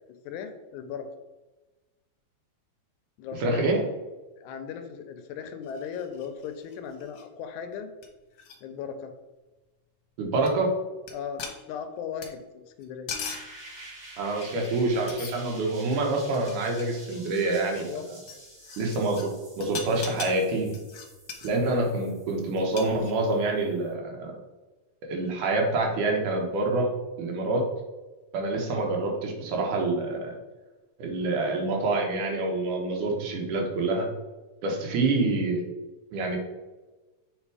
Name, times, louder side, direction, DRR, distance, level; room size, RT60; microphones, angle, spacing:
voice 1, 0.3-1.1 3.2-3.8 4.4-7.9 8.6-9.1 11.1-13.1 17.9-18.1 28.7-28.9, left 7 dB, 80° left, 8 dB, 1.9 m, -37 dB
voice 2, 3.4-3.8 10.2-10.7 14.2-17.8 18.8-19.3 19.6-20.8 21.4-24.3 25.1-26.9 27.2-27.6 28.3-30.3 31.0-34.1 34.6-35.6 36.1-36.4, right 2 dB, 80° right, 1 dB, 2.7 m, -26 dB
sound 1, 5.6-7.2 7.7-7.8 8.0-8.1 8.3-8.6 10.5-10.6 11.1-11.2 11.4-12.3 12.8-13.5 14.4-14.8 15.1-15.7 16.2-19.3 19.6-21.5 22.6-23.4, left 5 dB, 65° left, 1.6 m, -41 dB
sound 2, 13.2-23.9, right 1 dB, 40° right, 2.7 m, -49 dB
7.4 x 3.5 x 4.8 m, 1.2 s
omnidirectional pair, 3.6 m